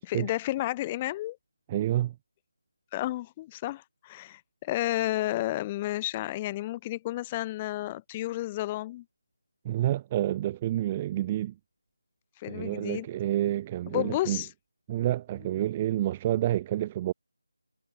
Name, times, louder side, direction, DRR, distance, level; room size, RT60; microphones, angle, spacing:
voice 1, 0.0-1.4 2.9-9.0 12.4-13.1 13.9-14.5, left 16 dB, 15° left, 6.9 m, -31 dB
voice 2, 1.7-2.1 9.6-11.5 12.5-14.4 14.9-17.1, right 13 dB, 20° right, 1.5 m, -28 dB
figure-of-eight pair, 165°, 0 cm